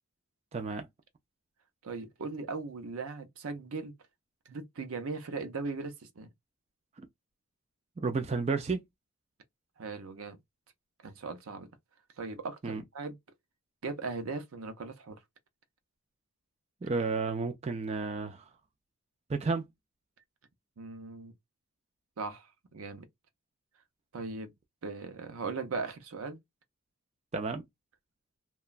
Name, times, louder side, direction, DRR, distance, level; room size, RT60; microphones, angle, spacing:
voice 1, 0.5-0.9 7.0-7.1 8.0-8.8 12.6-12.8 16.8-18.4 19.3-19.6 27.3-27.6, right 4 dB, 30° right, 0.3 m, -32 dB
voice 2, 1.8-3.9 4.5-6.3 9.8-10.4 11.0-11.7 12.2-13.2 13.8-15.2 20.8-21.3 22.2-23.1 24.1-24.5 24.8-26.4, right 4 dB, 80° right, 0.6 m, -38 dB
2.9 x 2.2 x 2.4 m
head